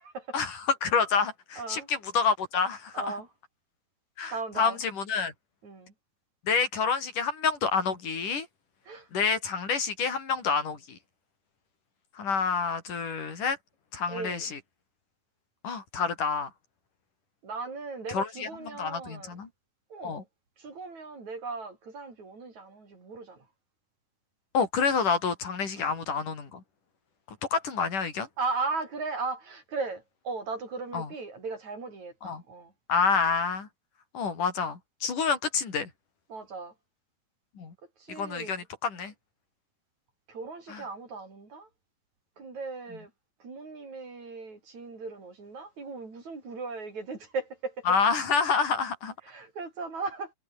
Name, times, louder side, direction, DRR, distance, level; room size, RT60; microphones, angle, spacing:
voice 1, 0.3-3.1 4.2-5.3 6.4-8.5 9.1-11.0 12.2-13.6 13.9-14.6 15.6-16.5 18.1-19.5 20.0-20.2 24.5-26.6 27.5-28.3 30.9-31.1 32.2-32.4 32.9-33.7 34.1-35.9 37.6-37.7 38.1-39.1 40.7-40.8 47.9-49.1, left 5 dB, 90° left, 6.0 m, -28 dB
voice 2, 1.6-1.9 2.9-3.3 4.3-4.8 5.6-5.9 8.9-9.1 14.1-14.5 17.4-19.4 19.9-20.3 20.6-23.5 25.8-25.9 28.4-32.7 36.3-36.7 38.0-38.6 40.3-41.7 42.4-43.1 43.4-47.9 49.2-50.3, right 4 dB, 65° right, 7.4 m, -37 dB
omnidirectional pair, 3.6 m